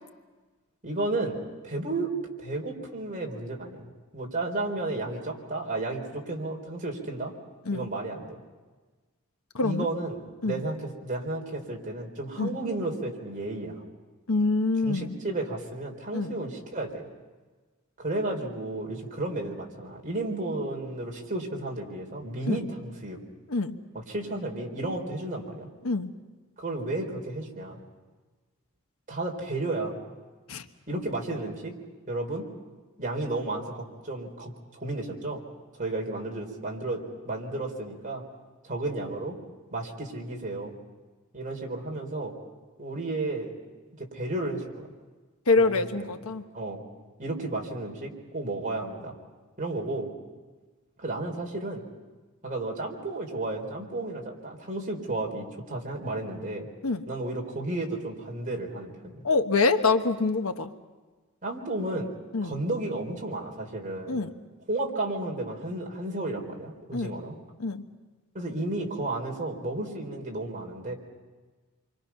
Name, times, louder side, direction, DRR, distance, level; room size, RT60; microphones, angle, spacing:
voice 1, 0.8-1.4 1.6-2.1 2.4-7.3 7.7-8.4 9.6-13.8 14.8-17.1 18.0-23.2 23.9-25.7 26.6-27.8 29.1-30.0 30.9-31.7 32.1-32.5 33.0-35.4 35.8-38.2 38.6-39.4 39.7-40.7 41.3-42.3 42.8-43.6 44.0-44.9 45.6-46.1 46.5-46.8 47.2-49.1 49.6-50.1 51.0-51.8 52.4-56.7 57.1-59.2 61.4-62.1 62.4-64.2 64.7-67.4 68.3-70.9, right 2 dB, 40° right, 0 dB, 3.8 m, -33 dB
voice 2, 9.5-9.9 10.4-10.6 12.4-12.6 14.3-15.1 16.1-16.4 22.5-22.6 23.5-23.8 25.8-26.1 30.5-30.7 45.5-46.4 56.8-57.0 59.2-60.7 62.3-62.6 64.1-64.3 66.9-67.1 67.6-67.9, left 3 dB, 80° left, 7 dB, 1.2 m, -25 dB
28.0 x 24.5 x 5.8 m, 1.3 s
head